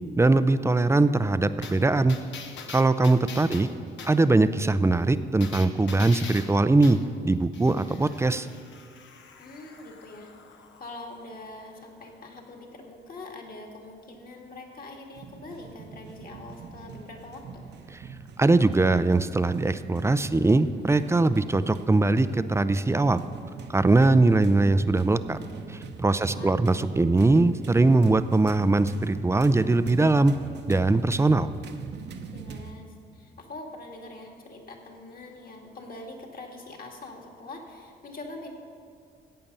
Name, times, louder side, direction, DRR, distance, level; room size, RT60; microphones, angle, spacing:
voice 1, 0.2-2.2 2.7-3.7 4.0-7.0 7.2-8.5 18.4-23.2 23.7-25.4 25.7-30.3 30.7-31.5, right 2 dB, 15° right, 12 dB, 0.5 m, -21 dB
sound 1, 1.6-4.2 5.4-7.1 7.5-12.7 13.1-13.2, left 6 dB, 65° left, 1.1 m, -44 dB
voice 2, 9.4-10.3 10.6-17.6 26.2-26.7 32.3-38.5, left 2 dB, 45° left, 1 dB, 2.2 m, -43 dB
sound 2, 15.1-32.7, right 5 dB, 60° right, 1.0 m, -42 dB
15.0 x 8.7 x 5.5 m, 2.5 s
cardioid pair, 90°, 20 cm